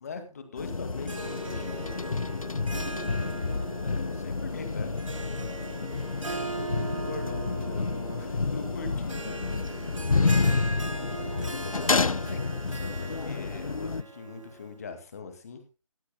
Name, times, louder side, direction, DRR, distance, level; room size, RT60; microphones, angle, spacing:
voice 1, 0.0-2.2 3.8-5.7 6.4-9.5 11.4-15.6, left 4 dB, 30° left, 7 dB, 2.3 m, -42 dB
sound 1, 0.6-14.0, left 4 dB, 85° left, 0.6 m, -29 dB
Harp, 1.0-14.7, right 3 dB, 70° right, 2.8 m, -40 dB
voice 2, 3.1-3.7 8.5-9.1 10.1-11.0, left 1 dB, 5° left, -6 dB, 7.0 m, -52 dB
sound 2, 4.4-9.4, right 7 dB, 45° right, 5.0 m, -58 dB
19.5 x 15.0 x 2.3 m, 0.29 s
figure-of-eight pair, 160°, 17 cm